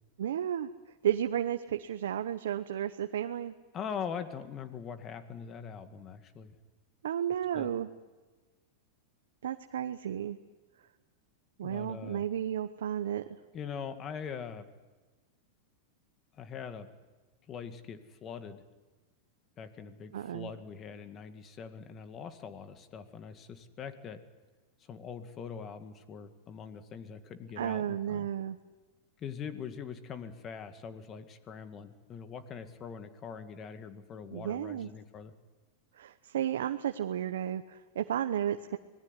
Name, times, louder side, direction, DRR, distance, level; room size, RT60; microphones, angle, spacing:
voice 1, 0.2-0.7 1.0-3.5 7.0-7.9 9.4-10.4 11.6-13.2 20.1-20.5 27.6-28.6 34.3-34.9 35.9-38.8, right 10 dB, 90° right, 8 dB, 1.0 m, -33 dB
voice 2, 3.7-6.5 7.5-7.7 11.6-12.3 13.5-14.7 16.3-16.9 17.5-18.6 19.6-24.2 24.9-28.3 29.2-35.3, left 6 dB, 30° left, 9 dB, 2.1 m, -42 dB
25.0 x 19.5 x 9.9 m, 1.3 s
supercardioid pair, 140°, 0 cm